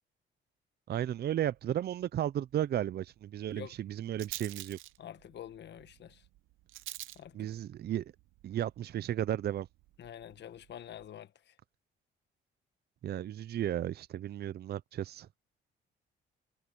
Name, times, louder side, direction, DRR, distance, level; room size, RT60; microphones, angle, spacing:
voice 1, 0.9-4.8 7.3-8.0 8.4-9.7 13.0-15.3, right 11 dB, 55° right, 0.6 m, -34 dB
Rattle, 1.1-11.1, right 15 dB, 85° right, 0.7 m, -51 dB
voice 2, 5.0-6.2 7.1-7.5 10.0-11.5, left 10 dB, 60° left, 1.2 m, -47 dB
cardioid pair, 90°, 20 cm